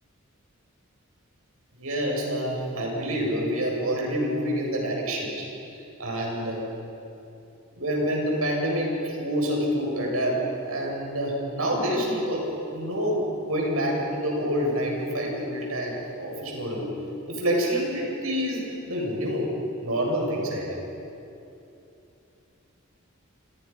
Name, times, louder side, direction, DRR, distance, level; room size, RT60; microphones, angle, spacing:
voice 1, 1.8-5.5 6.0-6.7 7.7-16.9 17.3-19.5 19.8-20.8, equal, 85° right, -2 dB, 7.9 m, -27 dB
30.0 x 28.0 x 5.9 m, 2.8 s
head